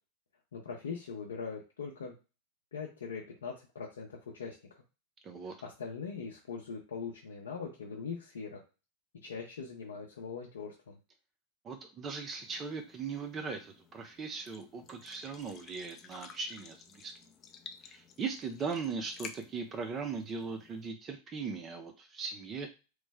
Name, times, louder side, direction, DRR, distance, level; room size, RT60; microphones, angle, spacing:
voice 1, 0.5-2.1 2.7-4.6 5.4-8.6 9.2-11.0, left 5 dB, 85° left, -2 dB, 0.6 m, -41 dB
voice 2, 5.2-5.6 11.6-17.1 17.8-22.7, right 5 dB, 30° right, 6 dB, 0.5 m, -39 dB
sound 1, 12.4-20.9, left 6 dB, 35° left, 0.5 m, -53 dB
3.1 x 2.0 x 3.4 m, 0.31 s
hypercardioid pair, 100°, 0 cm